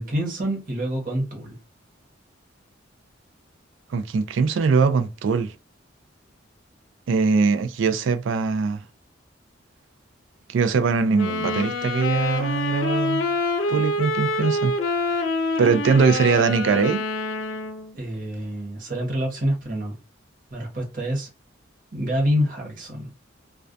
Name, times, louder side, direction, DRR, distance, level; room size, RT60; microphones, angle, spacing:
voice 1, 0.0-1.6 17.9-20.0 20.5-21.3 21.9-23.1, equal, 45° right, 0.9 m, -27 dB
voice 2, 3.9-5.5 7.1-8.8 10.5-13.3 13.7-14.7 15.6-17.0, right 5 dB, 75° right, 0.3 m, -21 dB
sound 1, 11.1-17.9, left 2 dB, 80° left, 0.5 m, -26 dB
2.2 x 2.2 x 2.5 m
head